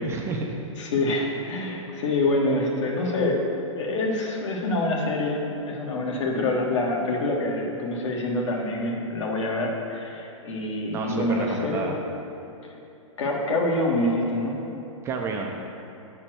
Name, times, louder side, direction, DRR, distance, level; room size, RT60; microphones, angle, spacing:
voice 1, 0.0-0.6 10.9-12.0 15.0-15.6, right 4 dB, 15° right, 1 dB, 0.4 m, -30 dB
voice 2, 0.8-3.4 3.7-11.9 13.2-14.5, left 2 dB, 60° left, -1 dB, 1.6 m, -26 dB
7.6 x 4.3 x 6.1 m, 2.9 s
hypercardioid pair, 135°, 17 cm